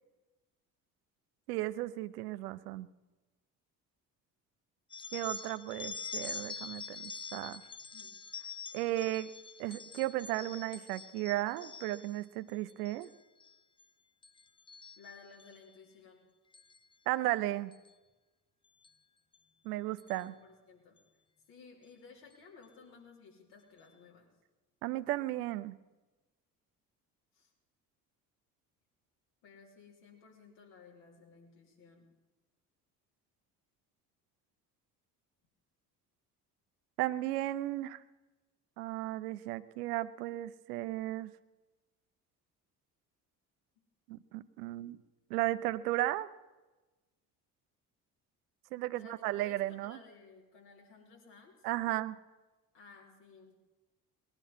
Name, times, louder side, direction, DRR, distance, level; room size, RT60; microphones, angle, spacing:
voice 1, 1.5-2.9 5.1-7.6 8.7-9.3 9.6-13.1 17.1-17.7 19.6-20.3 24.8-25.8 37.0-38.0 38.8-41.3 44.1-45.0 45.3-46.3 48.7-50.0 51.6-52.2, right 16 dB, 80° right, 14 dB, 0.7 m, -35 dB
sound 1, 4.9-12.2 12.7-13.1 13.4-13.8 14.2-15.6 16.5-16.8 17.7-17.9 18.8-18.9 19.3-19.4 20.0-20.2, left 5 dB, 10° left, 0.4 m, -45 dB
voice 2, 15.0-16.2 20.2-21.0 21.5-24.3 27.4-27.5 29.4-32.1 48.9-51.5 52.7-53.6, left 4 dB, 70° left, -1 dB, 3.5 m, -56 dB
19.5 x 11.5 x 5.4 m, 1.2 s
hypercardioid pair, 55°, 46 cm